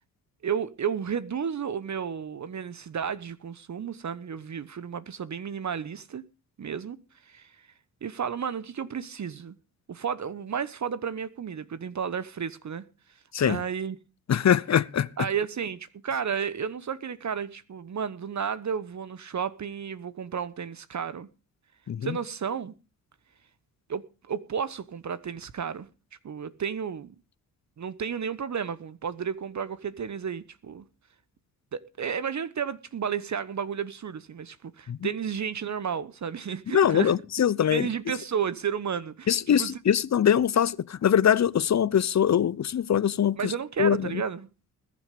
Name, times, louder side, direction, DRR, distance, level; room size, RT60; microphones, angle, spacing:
voice 1, 0.4-6.2 6.6-7.0 7.3-7.7 8.0-9.5 9.9-12.8 13.4-14.0 15.2-21.3 22.0-22.7 23.9-25.9 26.2-27.1 27.8-30.9 31.7-37.1 37.7-39.8 43.4-44.5, right 7 dB, 45° right, 1.1 m, -32 dB
voice 2, 14.3-15.1 21.9-22.2 34.9-35.1 36.7-37.9 39.3-43.5 43.8-44.1, left 9 dB, 40° left, 0.8 m, -23 dB
20.5 x 7.5 x 5.2 m
hypercardioid pair, 45°, 41 cm